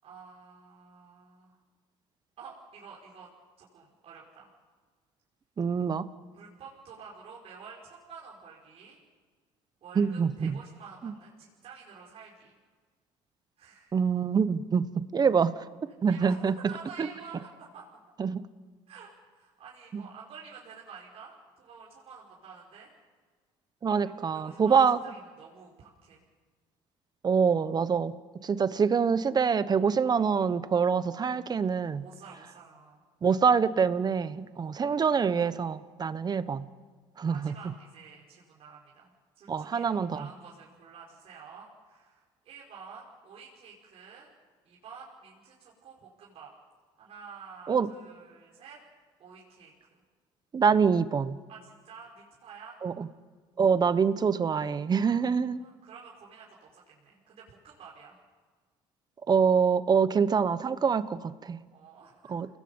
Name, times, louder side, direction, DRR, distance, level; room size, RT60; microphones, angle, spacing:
voice 1, 0.0-1.6 2.4-3.3 3.6-4.5 6.3-9.0 9.8-12.5 13.6-14.0 16.0-17.5 17.7-17.8 18.9-22.9 24.0-26.2 28.4-28.5 31.9-33.0 34.4-34.9 37.3-44.3 44.6-46.5 47.0-48.8 49.2-49.7 50.6-50.7 51.5-52.8 54.9-58.2 61.1-61.2 61.7-62.3, right 6 dB, 60° right, -4 dB, 5.3 m, -49 dB
voice 2, 5.6-6.1 10.0-10.6 11.0-11.1 13.9-14.9 15.1-15.6 16.0-16.5 17.0-17.1 18.2-18.4 19.9-20.0 23.8-25.0 27.2-28.1 28.4-32.0 33.2-36.7 37.2-37.5 39.5-40.3 47.7-47.9 50.5-51.4 52.8-53.1 53.6-55.6 59.3-61.6 62.3-62.5, right 6 dB, 35° right, 14 dB, 1.2 m, -25 dB
29.5 x 20.0 x 5.5 m, 1.5 s
supercardioid pair, 80°, 12 cm